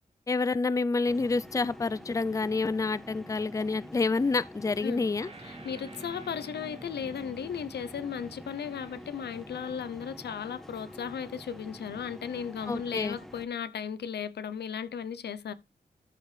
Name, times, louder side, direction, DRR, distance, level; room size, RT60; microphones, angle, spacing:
voice 1, 0.3-5.3 12.7-13.2, left 3 dB, 20° left, 0.4 m, -28 dB
sound 1, 1.1-13.5, equal, ahead, 1.2 m, -47 dB
sound 2, 5.2-9.4, right 3 dB, 35° right, 1.4 m, -50 dB
voice 2, 5.4-15.5, left 7 dB, 80° left, 0.6 m, -36 dB
13.0 x 4.7 x 3.2 m
cardioid pair, 60°, 17 cm